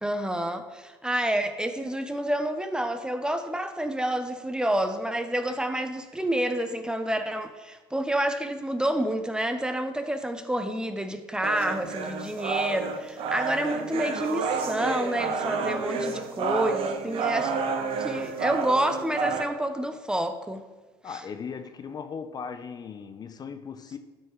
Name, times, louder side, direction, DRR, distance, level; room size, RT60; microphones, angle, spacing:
voice 1, 0.0-17.5 18.0-20.6 21.1-21.2, right 1 dB, 5° right, 0.7 m, -28 dB
sound 1, 11.4-19.4, right 5 dB, 50° right, 1.0 m, -30 dB
voice 2, 21.0-24.0, left 6 dB, 35° left, 0.6 m, -38 dB
12.0 x 5.4 x 3.1 m
hypercardioid pair, 70°, 12 cm